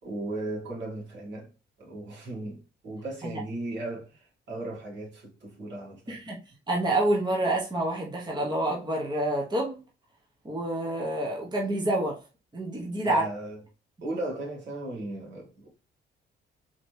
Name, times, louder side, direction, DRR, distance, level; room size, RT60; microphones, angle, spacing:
voice 1, 0.0-1.5 1.8-6.2 13.0-13.6 14.0-15.7, right 2 dB, 65° right, 2.2 m, -36 dB
voice 2, 6.7-9.8 10.4-12.2 12.5-13.2, right 1 dB, 20° right, 1.1 m, -28 dB
4.0 x 3.0 x 3.3 m
cardioid pair, 90°, 20 cm